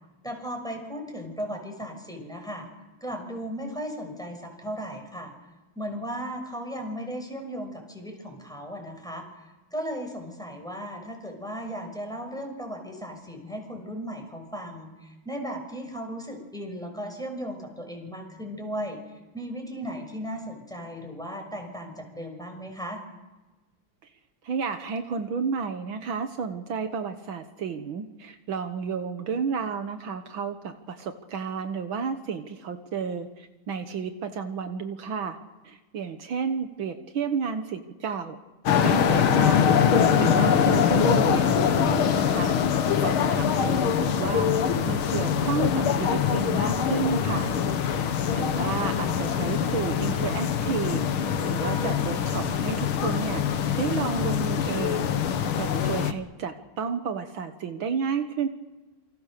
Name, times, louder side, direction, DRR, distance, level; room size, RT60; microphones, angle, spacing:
voice 1, 0.2-2.7 3.0-5.3 5.7-9.3 9.7-19.0 19.3-23.0, equal, ahead, 2 dB, 6.3 m, -36 dB
voice 2, 24.4-35.4 35.6-38.4 38.8-42.6 43.0-44.5 44.9-47.5 48.3-55.1 55.6-58.5, right 6 dB, 75° right, 7 dB, 2.1 m, -32 dB
sound 1, 38.7-56.1, left 7 dB, 85° left, 2.1 m, -23 dB
28.5 x 25.5 x 6.7 m, 1.1 s
omnidirectional pair, 2.3 m